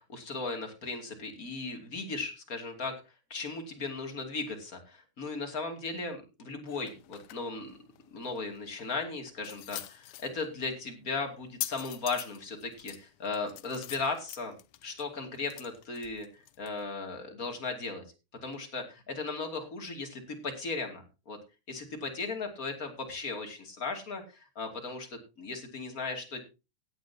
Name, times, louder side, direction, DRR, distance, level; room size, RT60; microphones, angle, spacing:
voice 1, 0.0-2.9 3.3-7.7 8.1-14.6 14.8-18.0 18.4-21.4 21.7-26.4, left 3 dB, 30° left, 4 dB, 2.8 m, -37 dB
sound 1, 6.7-16.9, left 16 dB, 90° left, 2.2 m, -45 dB
16.5 x 9.8 x 2.8 m, 0.28 s
omnidirectional pair, 3.4 m